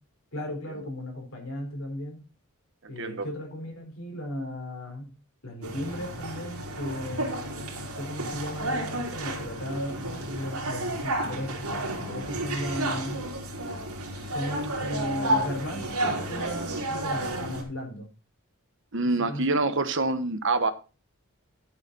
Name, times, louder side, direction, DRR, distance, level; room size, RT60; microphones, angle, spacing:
voice 1, 0.3-2.2 2.9-5.1 5.4-7.3 7.8-13.2 14.1-18.1 19.3-19.6, left 1 dB, 60° left, 2 dB, 4.5 m, -36 dB
voice 2, 2.8-3.3 18.9-20.7, right 3 dB, 55° right, 9 dB, 1.3 m, -26 dB
sound 1, 5.6-17.6, right 1 dB, 85° right, 3.7 m, -31 dB
11.0 x 8.4 x 4.2 m, 0.33 s
head